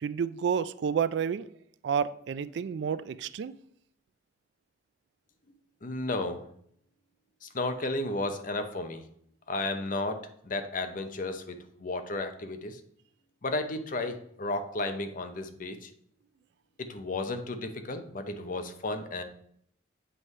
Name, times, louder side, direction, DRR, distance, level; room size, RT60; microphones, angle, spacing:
voice 1, 0.0-1.5 1.8-3.6, right 7 dB, 60° right, 0.3 m, -30 dB
voice 2, 5.8-6.4 7.4-9.0 9.5-10.2 10.5-12.8 13.4-15.9 16.8-19.2, left 2 dB, 45° left, 0.7 m, -33 dB
7.7 x 3.2 x 5.3 m
head